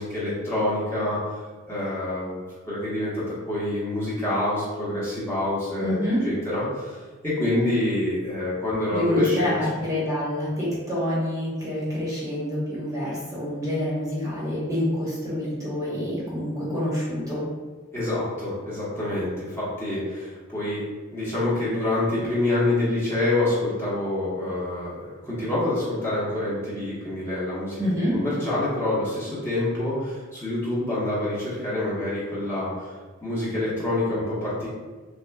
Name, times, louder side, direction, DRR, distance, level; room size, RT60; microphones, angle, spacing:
voice 1, 0.0-1.4 1.7-9.5 17.9-20.8 21.1-27.8 28.1-32.9 33.2-34.7, left 1 dB, 10° left, -9 dB, 1.0 m, -27 dB
voice 2, 5.8-6.2 8.9-17.4 27.8-28.2, left 1 dB, 15° right, -7 dB, 1.0 m, -27 dB
5.8 x 2.2 x 2.2 m, 1.3 s
head